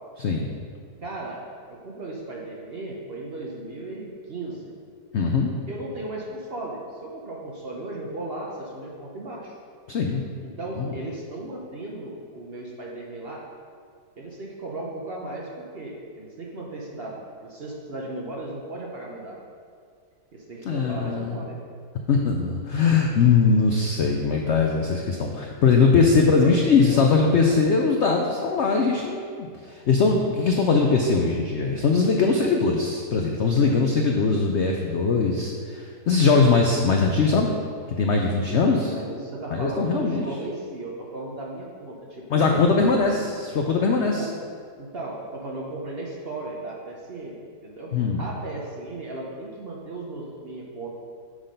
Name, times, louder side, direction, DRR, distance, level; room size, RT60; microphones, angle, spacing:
voice 1, 0.2-0.5 5.1-5.5 9.9-10.2 10.8-10.9 20.6-21.4 22.1-37.5 37.9-38.9 39.5-40.2 42.3-44.3 47.9-48.2, left 4 dB, 70° left, 2 dB, 0.6 m, -21 dB
voice 2, 1.0-1.4 1.7-4.7 5.7-9.6 10.4-13.4 14.2-19.4 20.3-21.6 26.2-26.5 26.8-27.1 32.3-32.5 38.5-42.6 44.0-44.3 44.8-51.0, right 2 dB, 45° right, -2 dB, 0.9 m, -36 dB
6.4 x 5.8 x 5.2 m, 2.1 s
omnidirectional pair, 1.8 m